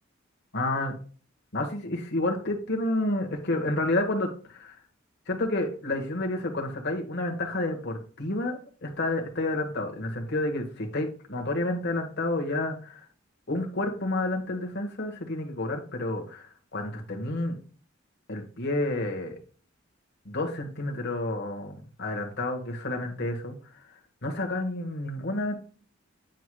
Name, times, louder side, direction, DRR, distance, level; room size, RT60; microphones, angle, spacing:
voice 1, 0.5-0.9 1.5-4.8 5.3-13.1 13.5-17.6 18.3-19.4 20.2-23.6 24.2-25.5, left 2 dB, 55° left, 2 dB, 1.3 m, -30 dB
9.1 x 4.7 x 2.2 m, 0.40 s
head